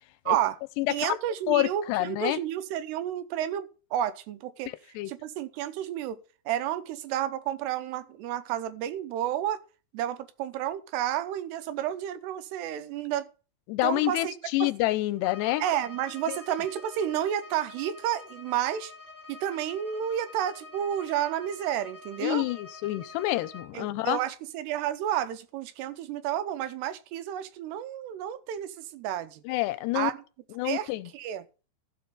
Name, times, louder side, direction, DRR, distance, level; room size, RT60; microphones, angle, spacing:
voice 1, 0.3-0.6 0.9-4.7 5.1-9.6 9.9-13.3 13.8-14.3 14.6-14.7 15.6-18.9 19.3-22.4 23.7-29.4 29.9-30.2 30.6-31.5, right 11 dB, 85° right, 2.8 m, -31 dB
voice 2, 0.8-1.1 1.5-2.4 5.0-5.1 13.7-15.6 16.3-16.4 22.2-24.2 29.5-30.1 30.6-31.1, left 17 dB, 85° left, 2.8 m, -27 dB
Bowed string instrument, 15.2-23.8, left 3 dB, 5° right, 1.5 m, -47 dB
14.0 x 7.0 x 3.7 m
omnidirectional pair, 4.8 m